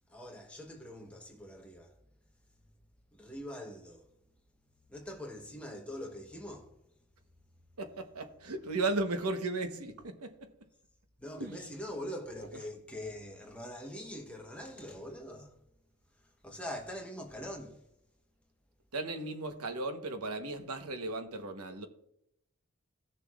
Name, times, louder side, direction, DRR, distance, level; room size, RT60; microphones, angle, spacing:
voice 1, 0.1-2.0 3.1-4.1 4.9-6.8 11.2-15.6 16.2-17.9, equal, 5° left, 1.0 m, -43 dB
voice 2, 7.8-10.5 11.4-11.6 18.9-21.9, right 2 dB, 90° right, 1.1 m, -35 dB
17.5 x 6.8 x 2.4 m
head